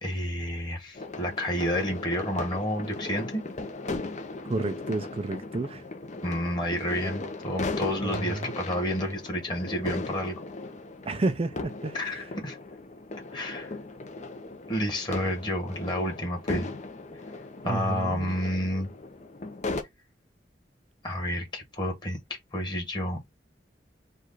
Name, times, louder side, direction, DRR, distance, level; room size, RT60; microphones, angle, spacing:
voice 1, 0.0-3.4 6.2-10.3 11.9-12.6 13.3-13.7 14.7-16.7 17.6-18.9 21.0-22.2 22.5-23.3, equal, 25° left, 1.7 m, -30 dB
sound 1, 0.9-19.8, left 3 dB, 40° left, 0.7 m, -37 dB
voice 2, 4.4-5.8 8.0-8.5 11.1-12.2 17.6-18.4, right 3 dB, 35° right, 0.4 m, -31 dB
4.7 x 2.5 x 4.0 m
head